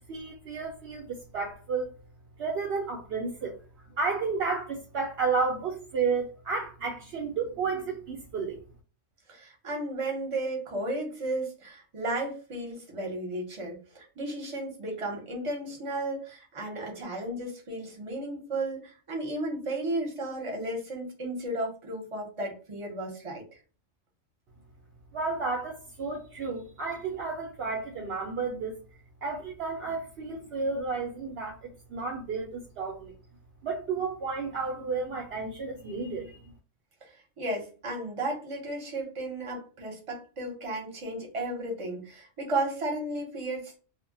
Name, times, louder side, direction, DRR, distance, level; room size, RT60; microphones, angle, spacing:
voice 1, 0.1-1.9 2.4-3.6 4.0-8.6 25.1-28.9 29.2-33.2 33.6-36.4, right 4 dB, 65° right, 0.7 m, -32 dB
voice 2, 9.3-23.4 37.0-43.8, right 1 dB, 30° right, 0.7 m, -34 dB
2.1 x 2.0 x 3.7 m
omnidirectional pair, 1.3 m